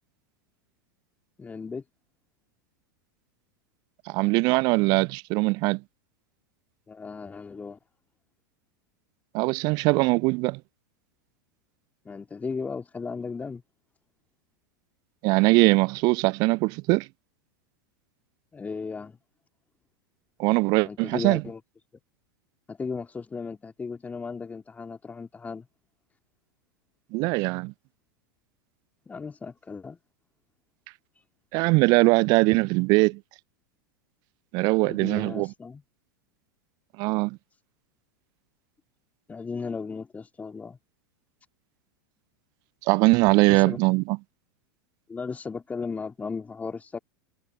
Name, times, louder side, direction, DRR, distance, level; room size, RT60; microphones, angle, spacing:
voice 1, 1.4-1.8 6.9-7.8 12.1-13.6 18.5-19.2 20.8-21.6 22.7-25.7 29.1-30.0 34.9-35.8 39.3-40.8 43.5-43.8 45.1-47.0, left 5 dB, 15° left, 2.1 m, -35 dB
voice 2, 4.1-5.8 9.3-10.6 15.2-17.1 20.4-21.4 27.1-27.7 31.5-33.2 34.5-35.5 37.0-37.4 42.9-44.2, right 26 dB, 40° right, 0.5 m, -21 dB
figure-of-eight pair, 90°, 11 cm